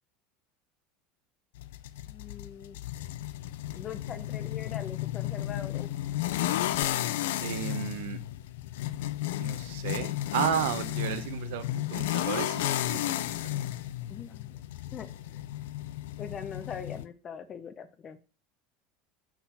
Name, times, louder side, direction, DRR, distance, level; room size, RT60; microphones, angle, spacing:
sound 1, 1.6-17.1, left 13 dB, 85° left, 0.4 m, -33 dB
voice 1, 2.1-2.8 3.7-5.9 14.1-14.6 14.9-15.4 16.2-18.2, left 7 dB, 30° left, 11 dB, 0.8 m, -42 dB
voice 2, 7.4-8.2 9.4-13.2 13.4-13.7, right 10 dB, 80° right, 11 dB, 0.8 m, -33 dB
5.9 x 4.1 x 5.6 m, 0.37 s
supercardioid pair, 130°, 0 cm